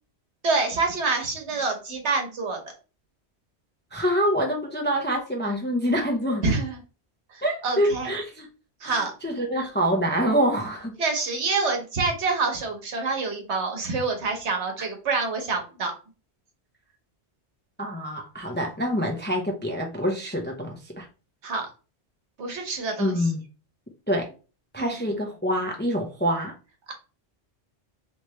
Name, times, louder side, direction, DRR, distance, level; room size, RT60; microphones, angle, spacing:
voice 1, 0.4-2.6 6.4-6.8 7.3-8.1 8.8-9.1 11.0-15.9 21.4-21.7 22.4-23.1 24.8-24.9, right 4 dB, 90° right, 1.3 m, -27 dB
voice 2, 3.9-6.5 7.4-8.5 8.8-10.9 17.8-21.1 23.0-23.4 24.1-24.3 24.7-26.5, equal, 15° left, 0.4 m, -26 dB
3.2 x 2.8 x 3.1 m
omnidirectional pair, 1.1 m